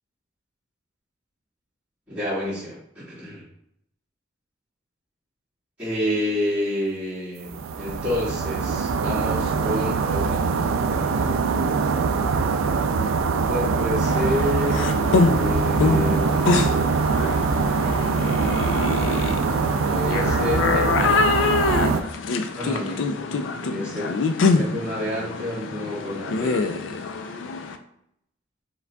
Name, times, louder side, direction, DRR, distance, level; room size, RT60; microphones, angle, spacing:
voice 1, 2.1-3.5 5.8-10.5 10.9-11.4 13.5-16.5 19.9-21.2 22.5-24.1 24.4-26.8, left 1 dB, 5° right, -11 dB, 1.6 m, -29 dB
sound 1, 7.5-22.0, right 4 dB, 80° right, 0.3 m, -23 dB
sound 2, 14.0-27.8, left 4 dB, 65° left, 0.4 m, -25 dB
4.8 x 3.8 x 2.2 m, 0.75 s
head